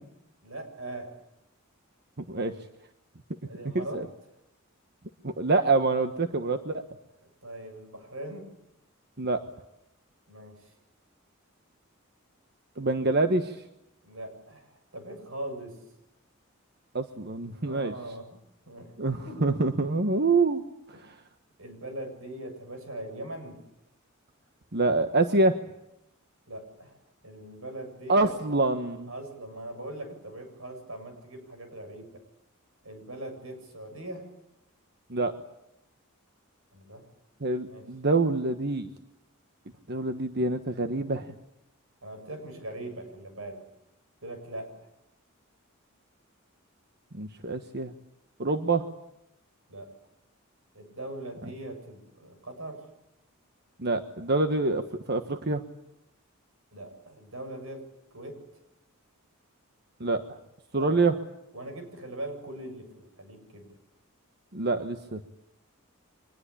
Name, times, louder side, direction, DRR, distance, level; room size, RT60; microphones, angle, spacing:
voice 1, 0.4-1.2 3.5-4.0 7.2-8.5 10.3-10.7 14.0-15.8 17.6-18.4 18.7-19.7 20.9-21.0 21.6-23.6 26.5-28.3 29.1-32.2 32.8-34.3 36.7-37.0 37.7-37.9 42.0-43.7 44.2-44.7 49.7-49.9 50.7-52.9 56.7-57.9 58.1-58.4 60.7-61.0 61.5-63.7, right 1 dB, 75° right, 6 dB, 7.6 m, -41 dB
voice 2, 5.2-6.8 9.2-9.4 12.8-13.6 16.9-17.9 19.0-20.6 20.9-21.1 24.7-25.6 28.1-29.1 35.1-35.3 37.4-38.9 39.9-41.3 47.1-47.9 48.4-48.9 53.8-55.6 60.0-60.4 60.7-61.1 64.5-65.2, right 3 dB, 50° right, 7 dB, 1.4 m, -26 dB
25.0 x 20.5 x 8.5 m, 0.84 s
head